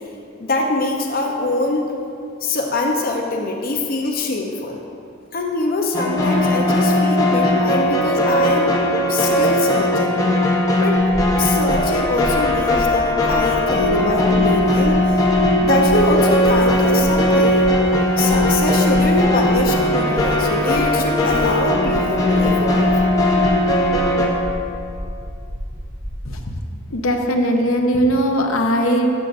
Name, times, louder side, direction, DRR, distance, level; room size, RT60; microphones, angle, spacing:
voice 1, 0.4-1.9 2.4-4.8 5.3-8.7 9.1-10.2 10.8-11.0 11.4-15.2 15.6-17.6 18.2-22.9, left 2 dB, 45° left, 1 dB, 0.6 m, -23 dB
sound 1, 5.9-24.3, left 1 dB, 20° left, 0.8 m, -18 dB
sound 2, 11.0-26.4, equal, 30° right, 1.5 m, -31 dB
voice 2, 26.9-29.1, equal, 80° left, 3 dB, 0.8 m, -19 dB
13.0 x 7.6 x 2.5 m, 2.5 s
head